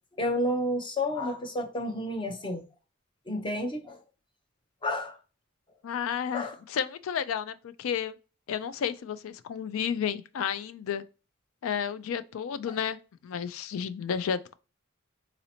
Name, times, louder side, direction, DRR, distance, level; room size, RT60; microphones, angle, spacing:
voice 1, 0.2-2.6 3.3-4.0 4.8-5.2 6.3-6.5, left 1 dB, 25° left, 0.6 m, -30 dB
voice 2, 5.8-8.1 8.5-11.0 11.6-13.0 13.2-14.5, left 7 dB, 75° left, 0.3 m, -32 dB
4.0 x 2.8 x 2.7 m
head